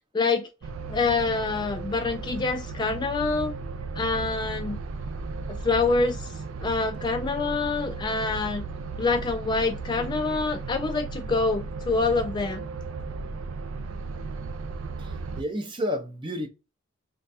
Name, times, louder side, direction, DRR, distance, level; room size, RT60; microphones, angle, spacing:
voice 1, 0.1-0.5 0.9-3.5 3.9-4.8 5.6-6.3 6.6-8.7 9.0-12.7, left 3 dB, 20° left, 0.3 m, -26 dB
sound 1, 0.6-15.4, right 4 dB, 80° right, 0.4 m, -35 dB
voice 2, 15.0-16.5, equal, 25° right, 0.6 m, -31 dB
3.2 x 2.3 x 4.1 m
head